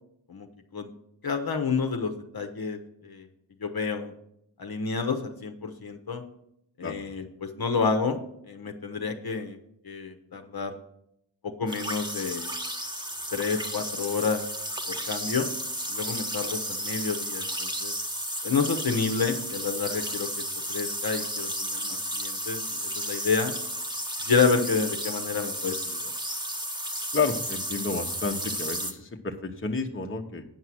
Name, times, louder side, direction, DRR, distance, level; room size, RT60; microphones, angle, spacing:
voice 1, 1.2-3.3 3.6-4.1 4.6-6.2 6.8-8.2 8.5-9.6 9.8-10.8 11.4-12.5 13.3-14.4 15.1-15.5 15.9-17.9 18.4-20.4 20.7-22.6 22.9-23.5 24.2-26.1, left 5 dB, 50° left, 5 dB, 1.0 m, -29 dB
sound 1, 11.7-28.9, equal, 10° right, 1.1 m, -33 dB
voice 2, 27.1-30.4, left 4 dB, 25° left, 3 dB, 1.0 m, -30 dB
9.0 x 5.6 x 6.2 m, 0.76 s
cardioid pair, 55°, 45 cm